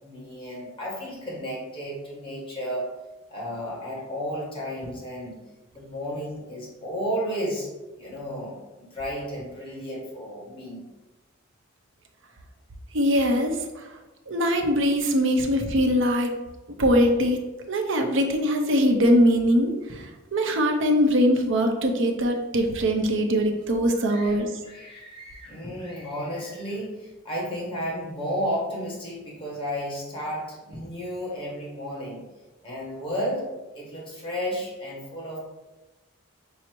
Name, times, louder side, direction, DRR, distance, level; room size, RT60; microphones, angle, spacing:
voice 1, 0.0-2.9 3.3-5.4 5.7-7.7 8.0-10.8 24.0-24.4 24.6-32.2 32.6-33.4 33.7-35.4, equal, 25° left, -5 dB, 1.3 m, -33 dB
voice 2, 12.9-13.8 14.3-16.3 16.8-17.4 17.7-19.7 20.3-24.5, equal, 60° right, 4 dB, 0.6 m, -22 dB
5.5 x 2.0 x 4.4 m, 1.1 s
head